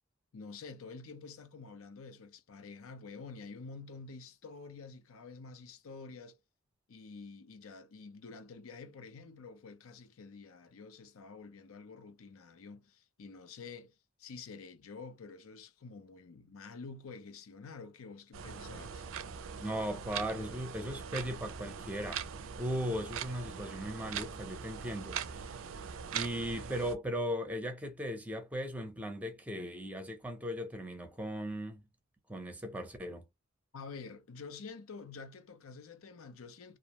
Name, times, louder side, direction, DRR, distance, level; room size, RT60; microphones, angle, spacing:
voice 1, 0.3-6.4 6.9-19.1 33.7-36.8, left 4 dB, 85° left, 0.5 m, -49 dB
sound 1, 18.3-26.9, right 7 dB, 70° right, 0.4 m, -42 dB
voice 2, 19.6-22.3 22.6-25.7 26.1-31.8 32.3-33.2, equal, 5° right, 0.5 m, -38 dB
2.5 x 2.0 x 2.8 m
head